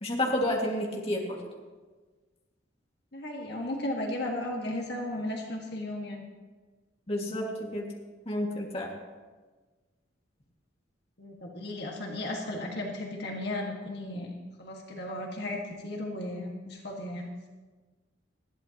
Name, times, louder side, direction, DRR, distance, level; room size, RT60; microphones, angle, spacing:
voice 1, 0.0-1.4 7.1-7.9 8.3-8.9, left 1 dB, 30° left, -2 dB, 2.1 m, -30 dB
voice 2, 3.1-6.2 11.2-14.3 14.6-17.3, left 1 dB, 60° left, 0 dB, 1.8 m, -35 dB
20.0 x 14.0 x 3.0 m, 1.3 s
head